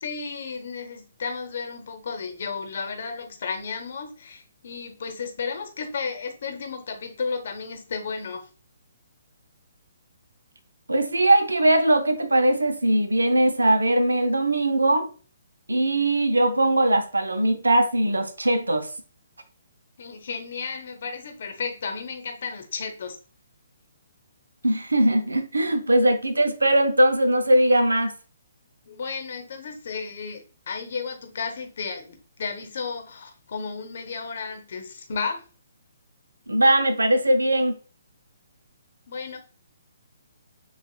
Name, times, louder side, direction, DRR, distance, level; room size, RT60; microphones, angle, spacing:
voice 1, 0.0-8.5 20.0-23.2 28.9-35.4 39.1-39.4, left 5 dB, 60° left, 0.8 m, -33 dB
voice 2, 10.9-15.1 15.7-18.9 24.6-28.1 36.5-37.8, right 1 dB, 90° right, 0.6 m, -20 dB
6.7 x 2.3 x 2.2 m
figure-of-eight pair, 140°, 0 cm